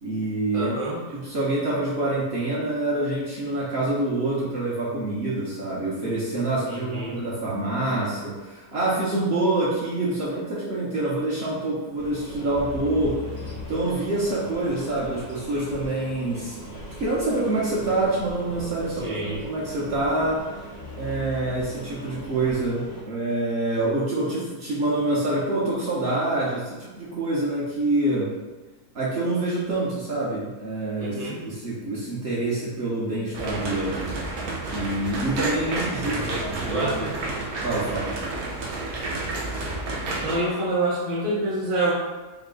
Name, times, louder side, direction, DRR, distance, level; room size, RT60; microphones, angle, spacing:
voice 1, 0.0-0.9 1.1-13.2 13.7-16.6 17.0-19.2 19.4-20.4 20.9-28.3 28.9-34.2 34.7-37.1 37.6-38.1, right 2 dB, 50° right, -7 dB, 1.0 m, -26 dB
voice 2, 0.5-1.0 6.7-7.2 19.0-19.4 31.0-31.4 36.0-37.2 40.2-41.9, right 2 dB, 25° right, -6 dB, 0.8 m, -27 dB
sound 1, 11.9-23.0, left 1 dB, 40° left, 0.6 m, -39 dB
sound 2, 33.3-40.4, right 2 dB, 75° right, 1.2 m, -30 dB
4.1 x 2.2 x 3.8 m, 1.3 s
omnidirectional pair, 1.6 m